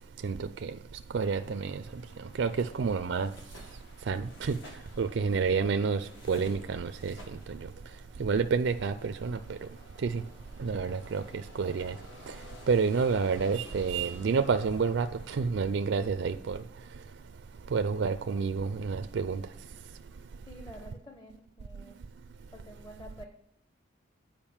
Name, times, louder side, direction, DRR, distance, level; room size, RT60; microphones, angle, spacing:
voice 1, 0.2-0.7 1.1-1.8 2.4-3.3 4.1-4.6 5.0-7.1 7.5-7.6 8.2-9.6 10.0-10.2 10.6-11.2 11.6-11.9 12.7-16.6 17.7-19.4, right 5 dB, 65° right, 0.4 m, -29 dB
sound 1, 1.2-16.2, left 1 dB, 70° left, 1.9 m, -54 dB
voice 2, 5.2-5.6 20.5-22.0 22.5-23.2, equal, 20° left, 0.8 m, -49 dB
8.9 x 5.0 x 7.1 m
head